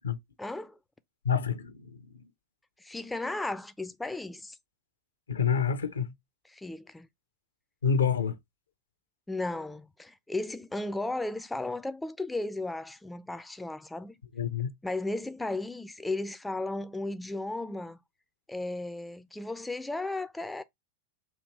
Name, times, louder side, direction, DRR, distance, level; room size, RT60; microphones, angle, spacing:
voice 1, 0.4-0.8 2.8-4.6 6.5-7.1 9.3-14.1 14.8-18.0 18.5-20.6, left 2 dB, 5° left, 0.4 m, -35 dB
voice 2, 1.2-2.3 5.3-6.1 7.8-8.4 14.3-14.7, left 6 dB, 70° left, 0.6 m, -28 dB
4.2 x 2.8 x 4.5 m
figure-of-eight pair, 90°, 0 cm